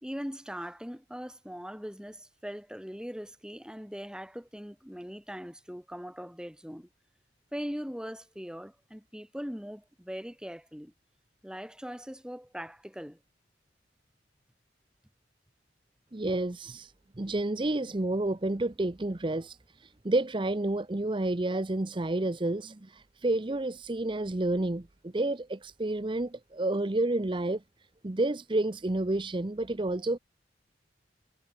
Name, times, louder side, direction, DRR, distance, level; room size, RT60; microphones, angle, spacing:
voice 1, 0.0-6.9 7.5-10.9 11.4-13.2, equal, 5° right, 4.5 m, -40 dB
voice 2, 16.1-27.6 28.0-30.2, right 2 dB, 25° right, 0.7 m, -30 dB
head